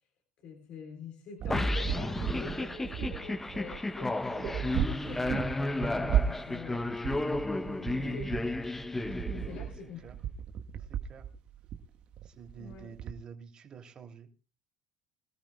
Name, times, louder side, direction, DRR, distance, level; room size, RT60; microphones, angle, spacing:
voice 1, 0.4-6.9 7.6-8.3 9.3-10.0 12.6-12.9, left 5 dB, 60° left, 4 dB, 3.8 m, -46 dB
sound 1, 1.4-13.1, right 9 dB, 55° right, 1.2 m, -35 dB
sound 2, 1.5-9.8, left 2 dB, 10° left, 0.7 m, -33 dB
voice 2, 10.8-11.3 12.2-14.5, right 7 dB, 40° right, 4 dB, 2.9 m, -49 dB
24.0 x 13.0 x 2.3 m, 0.31 s
supercardioid pair, 95°, 2 cm